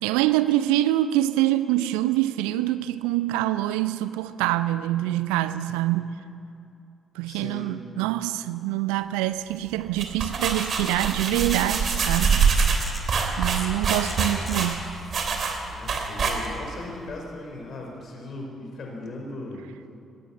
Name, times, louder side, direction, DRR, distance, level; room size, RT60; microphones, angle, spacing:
voice 1, 0.0-6.2 7.1-12.5 13.4-14.8, right 14 dB, 70° right, 13 dB, 0.5 m, -25 dB
voice 2, 7.2-7.7 15.7-19.7, left 2 dB, 50° left, 1 dB, 5.1 m, -38 dB
sound 1, 9.8-16.8, right 5 dB, 50° right, 2.9 m, -25 dB
sound 2, 11.9-17.3, left 2 dB, 20° left, 4.7 m, -43 dB
19.5 x 17.5 x 7.7 m, 2.6 s
figure-of-eight pair, 40°, 0 cm